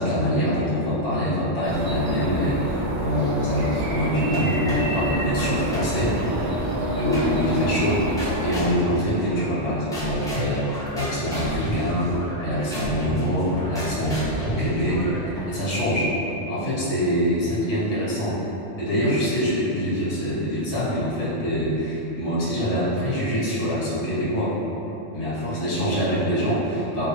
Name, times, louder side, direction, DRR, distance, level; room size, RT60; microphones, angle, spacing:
voice 1, 0.0-6.5 7.0-8.0 8.4-12.1 12.4-14.2 14.4-16.1 16.5-18.4 18.8-24.5 25.1-27.1, equal, 55° left, -9 dB, 1.1 m, -24 dB
sound 1, 1.6-8.6, right 1 dB, 50° right, 0.4 m, -27 dB
sound 2, 4.3-5.0 5.4-6.5 7.1-7.7 8.2-9.6 9.9-15.6, equal, 5° left, 0.6 m, -31 dB
3.3 x 2.3 x 3.1 m, 3.0 s
omnidirectional pair, 1.3 m